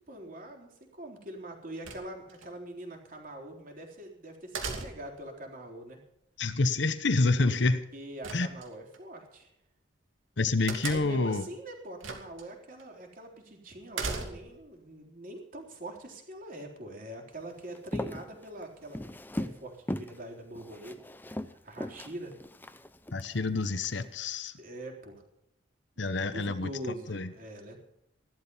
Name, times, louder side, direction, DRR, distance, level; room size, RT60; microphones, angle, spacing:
voice 1, 0.1-6.0 7.9-9.5 10.9-19.0 19.3-21.0 21.3-22.4 24.6-25.2 26.0-27.8, right 1 dB, 45° right, 1 dB, 3.8 m, -43 dB
sound 1, 1.8-2.5 4.5-5.2 8.2-9.0 10.7-11.3 12.0-12.4 12.8-12.9 13.9-14.6, right 4 dB, 90° right, 2.8 m, -37 dB
voice 2, 6.4-7.9 8.3-8.5 10.4-11.4 23.1-24.5 26.0-26.7 27.1-27.3, left 3 dB, 65° left, 11 dB, 1.0 m, -27 dB
Walk footsteps, 17.7-19.6 19.9-20.2 20.5-23.3 23.8-24.1, left 1 dB, 10° left, 0.6 m, -38 dB
16.0 x 12.5 x 5.6 m, 0.80 s
head